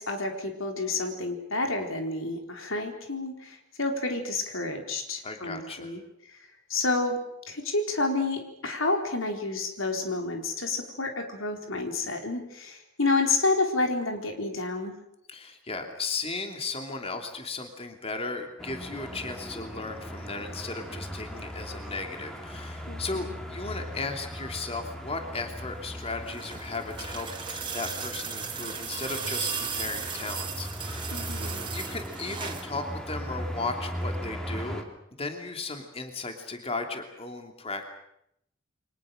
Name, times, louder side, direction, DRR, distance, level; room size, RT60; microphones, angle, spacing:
voice 1, 0.0-6.0 6.3-6.4 6.7-7.2 7.5-14.9 22.9-23.4 31.1-31.7, left 3 dB, 80° left, 4 dB, 4.1 m, -29 dB
voice 2, 5.2-5.9 15.3-31.1 31.4-34.8 35.2-37.9, left 3 dB, 30° left, 4 dB, 2.9 m, -36 dB
sound 1, 18.6-34.8, equal, 5° left, 3.1 m, -38 dB
sound 2, 25.9-32.7 34.0-34.1, right 6 dB, 25° right, 3.3 m, -36 dB
29.0 x 24.0 x 6.5 m, 0.76 s
head